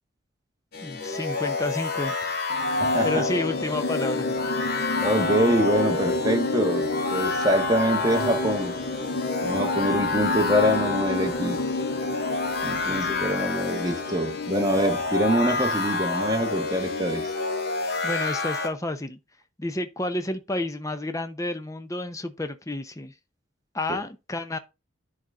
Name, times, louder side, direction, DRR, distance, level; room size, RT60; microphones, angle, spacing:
sound 1, 0.7-18.7, left 3 dB, 50° left, 1.9 m, -28 dB
voice 1, 0.8-2.4 3.0-4.4 12.8-13.2 18.0-19.2 19.6-23.1 23.7-24.6, left 1 dB, 15° left, 0.7 m, -31 dB
sound 2, 2.5-15.8, left 1 dB, 80° left, 1.3 m, -32 dB
voice 2, 2.8-3.2 5.0-8.8 9.4-11.6 12.6-17.3, equal, 20° right, 1.5 m, -25 dB
10.5 x 4.1 x 3.6 m
head